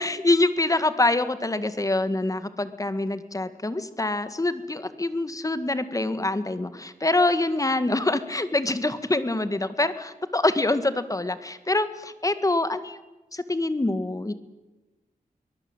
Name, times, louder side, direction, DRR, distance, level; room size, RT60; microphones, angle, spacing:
voice 1, 0.0-13.0 13.3-14.3, left 2 dB, 20° left, 12 dB, 1.8 m, -25 dB
24.0 x 19.0 x 9.0 m, 1.1 s
wide cardioid pair, 105°, 15 cm